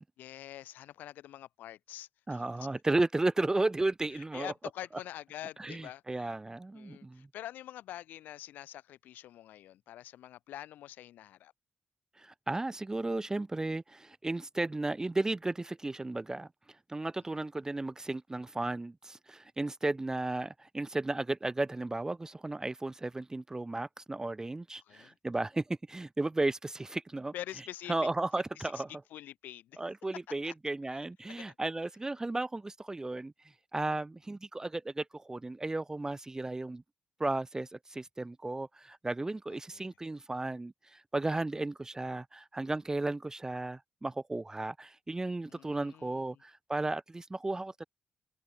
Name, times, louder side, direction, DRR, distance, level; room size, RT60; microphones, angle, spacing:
voice 1, 0.2-2.7 4.1-6.3 6.7-11.5 24.7-25.2 27.3-28.1 28.5-28.8 29.1-29.8 30.4-30.5 30.9-31.0 31.4-31.6 39.5-39.9 45.5-46.2, left 13 dB, 85° left, 3.0 m, -46 dB
voice 2, 2.3-4.5 5.6-7.3 12.2-16.5 16.9-27.3 27.9-28.9 29.8-33.3 33.7-36.8 37.2-47.8, right 2 dB, 20° right, 0.4 m, -34 dB
supercardioid pair, 50°, 3 cm